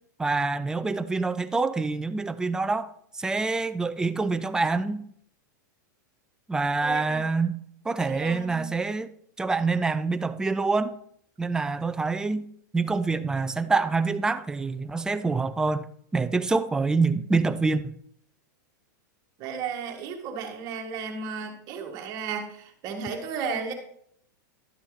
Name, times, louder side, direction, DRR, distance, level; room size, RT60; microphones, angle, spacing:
voice 1, 0.2-5.0 6.5-9.1 9.4-11.0 11.4-12.5 12.7-15.8 16.1-17.9, right 3 dB, 5° right, 0.4 m, -26 dB
voice 2, 6.8-7.2 8.0-8.7 19.4-23.7, right 5 dB, 35° right, 1.8 m, -34 dB
11.5 x 6.9 x 4.0 m
supercardioid pair, 145°, 10 cm